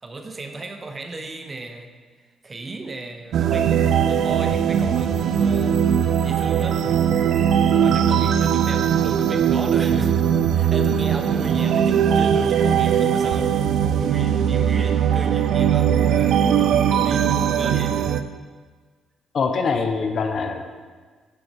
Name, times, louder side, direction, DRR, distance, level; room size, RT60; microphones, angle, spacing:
voice 1, 0.0-1.9 2.4-5.9 6.2-7.1 7.8-10.2 10.5-16.5 16.9-18.0, right 3 dB, 30° right, 5 dB, 0.9 m, -34 dB
sound 1, 3.3-18.2, right 8 dB, 70° right, 0.4 m, -20 dB
voice 2, 19.3-20.6, left 5 dB, 55° left, 6 dB, 0.8 m, -23 dB
8.7 x 6.8 x 3.5 m, 1.5 s
cardioid pair, 90°, 0 cm